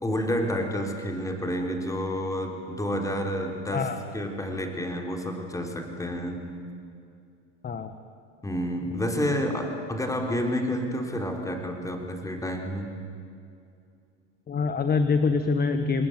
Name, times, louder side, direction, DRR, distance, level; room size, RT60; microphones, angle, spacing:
voice 1, 0.0-3.9 4.1-6.5 8.4-13.0, equal, 10° left, 3 dB, 3.8 m, -29 dB
voice 2, 14.5-16.1, left 4 dB, 25° left, 9 dB, 1.4 m, -25 dB
27.0 x 20.5 x 9.2 m, 2.5 s
supercardioid pair, 100°, 35 cm